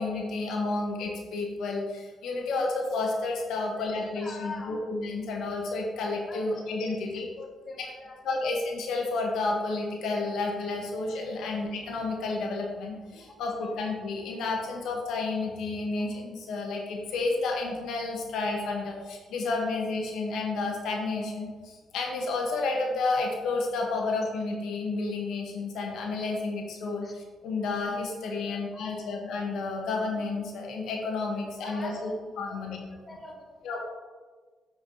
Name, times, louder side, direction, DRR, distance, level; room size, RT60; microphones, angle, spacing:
voice 1, 0.0-7.3 8.2-32.1 32.4-32.8 33.6-33.8, left 3 dB, 80° left, 0 dB, 1.5 m, -31 dB
voice 2, 3.6-4.8 6.3-6.6 6.9-7.0 7.4-8.2 13.2-13.7 16.0-16.2 27.0-27.1 27.6-27.7 28.5-29.1 31.6-32.8 33.1-33.8, left 3 dB, 35° left, 1 dB, 1.3 m, -45 dB
7.9 x 5.0 x 4.9 m, 1.4 s
cardioid pair, 90°, 0 cm